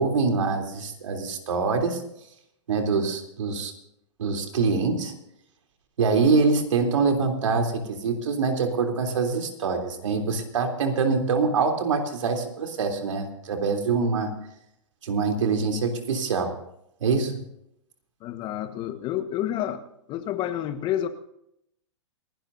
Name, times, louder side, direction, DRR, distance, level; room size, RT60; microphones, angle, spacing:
voice 1, 0.0-2.0 2.7-3.7 4.2-5.1 6.0-14.3 15.0-16.5 17.0-17.4, right 4 dB, 75° right, 4 dB, 3.4 m, -24 dB
voice 2, 18.2-19.8 20.1-21.1, left 11 dB, 30° left, 9 dB, 1.4 m, -29 dB
28.0 x 12.0 x 2.7 m, 0.76 s
hypercardioid pair, 135°, 16 cm